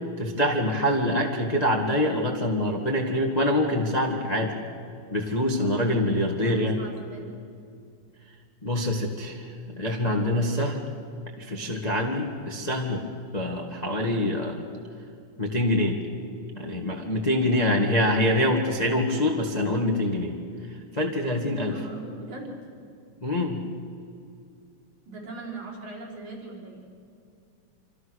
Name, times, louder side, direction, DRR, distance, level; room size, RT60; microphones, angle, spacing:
voice 1, 0.2-4.5 5.1-6.8 8.6-9.4 9.7-10.7 11.4-13.0 13.3-14.6 15.4-16.0 16.6-20.3 20.9-21.7 23.2-23.6, left 1 dB, 20° left, 1 dB, 1.1 m, -25 dB
voice 2, 5.6-7.3 10.2-10.5 21.6-22.5 25.1-26.8, right 3 dB, 65° right, -4 dB, 6.4 m, -39 dB
27.0 x 26.0 x 6.4 m, 2.4 s
omnidirectional pair, 3.6 m